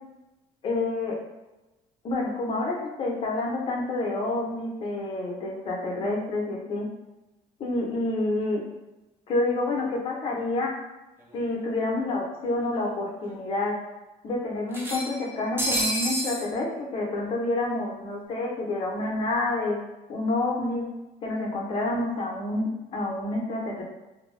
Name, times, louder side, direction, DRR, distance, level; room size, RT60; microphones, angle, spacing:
voice 1, 0.6-1.2 2.0-6.9 7.6-8.6 9.3-10.8 11.3-13.8 14.2-19.8 20.1-20.9 21.2-23.8, left 2 dB, 35° left, -1 dB, 0.6 m, -28 dB
sound 1, 11.3-11.4 11.7-11.8 12.9-13.0 13.3-13.4 14.7-16.4, right 1 dB, 15° right, 0.5 m, -29 dB
2.6 x 2.2 x 3.1 m, 1.0 s
cardioid pair, 155°, 17 cm